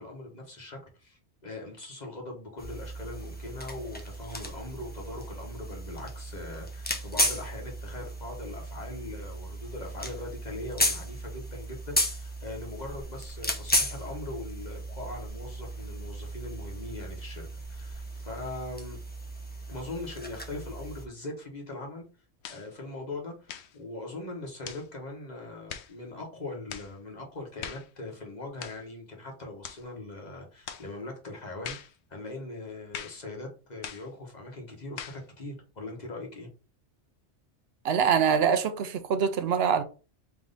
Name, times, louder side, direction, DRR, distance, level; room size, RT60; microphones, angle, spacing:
voice 1, 0.0-19.0 19.7-22.0 22.5-31.8 32.1-36.5, left 2 dB, 40° left, 1.2 m, -41 dB
sound 1, 2.6-21.1, equal, 10° left, 0.5 m, -34 dB
sound 2, 22.4-22.7 23.4-23.8 24.6-24.9 25.7-25.9 26.7-26.9 27.6-27.9 28.6-28.8 29.6-29.8 30.7-30.9 31.6-31.9 32.9-33.2 33.8-34.1 35.0-35.2, left 8 dB, 80° left, 0.9 m, -41 dB
voice 2, 37.8-39.8, right 7 dB, 70° right, 0.8 m, -24 dB
3.5 x 3.1 x 3.9 m
omnidirectional pair, 1.1 m